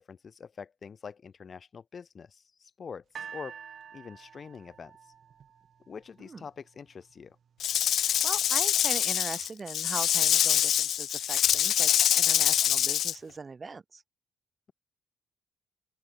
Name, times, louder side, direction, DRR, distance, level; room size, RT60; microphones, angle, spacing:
voice 1, 0.0-3.6 3.9-5.1 5.9-7.4, left 6 dB, 45° left, 7.9 m, -45 dB
sound 1, 3.1-6.3 7.1-7.2, right 7 dB, 55° right, 4.9 m, -47 dB
Rattle / Rattle (instrument), 7.6-13.1, left 10 dB, 70° left, 1.1 m, -25 dB
voice 2, 7.9-14.0, right 4 dB, 30° right, 1.3 m, -41 dB
open air
cardioid pair, 90°, 0 cm